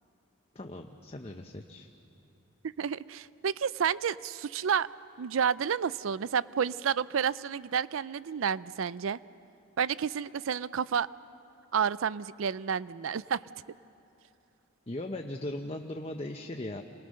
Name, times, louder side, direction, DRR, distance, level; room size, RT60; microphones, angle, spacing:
voice 1, 0.5-1.9 14.9-16.8, left 1 dB, 30° left, 4 dB, 0.8 m, -38 dB
voice 2, 2.8-4.9 5.2-9.2 9.8-11.1 11.7-13.4, right 7 dB, 75° right, 18 dB, 0.4 m, -30 dB
27.5 x 20.5 x 6.5 m, 2.9 s
head